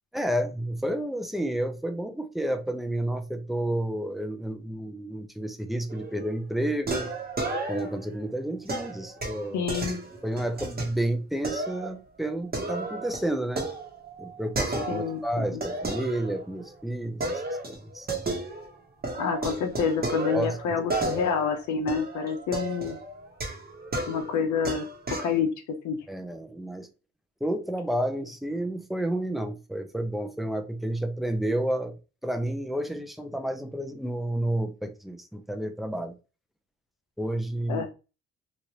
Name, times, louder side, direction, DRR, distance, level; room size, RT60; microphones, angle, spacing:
voice 1, 0.1-7.1 7.7-9.7 10.2-13.7 14.2-18.1 20.3-20.8 26.1-26.9 27.4-32.0 32.2-36.1 37.2-37.9, right 1 dB, ahead, 0.5 m, -30 dB
sound 1, 5.9-6.3 6.9-8.1 8.7-10.9 11.4-11.9 12.2-15.2 15.6-16.7 17.2-18.8 19.0-25.4, right 2 dB, 30° right, 1.0 m, -33 dB
voice 2, 9.5-10.1 14.9-15.6 19.1-23.0 24.1-24.8 25.2-26.0 37.7-37.9, left 6 dB, 70° left, 0.8 m, -28 dB
3.1 x 2.5 x 2.8 m
cardioid pair, 90°, 30 cm